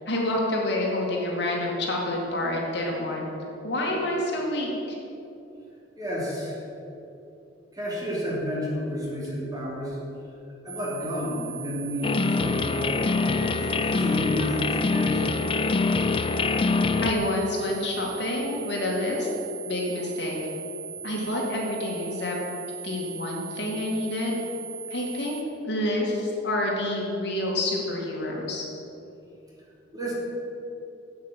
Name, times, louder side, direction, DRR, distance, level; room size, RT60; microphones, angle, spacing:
voice 1, 0.1-3.3 3.6-5.0 17.0-19.3 19.7-20.4 21.0-22.4 22.8-24.4 24.9-25.4 25.6-28.6, left 1 dB, 65° left, -2 dB, 2.3 m, -28 dB
voice 2, 6.0-6.6 7.7-10.0 10.6-15.2 29.9-30.1, equal, 20° right, -5 dB, 3.0 m, -31 dB
sound 1, 10.7-25.4, right 6 dB, 55° right, 1.0 m, -39 dB
sound 2, 12.0-17.1, left 4 dB, 30° left, 0.4 m, -25 dB
8.4 x 8.4 x 7.5 m, 2.8 s
head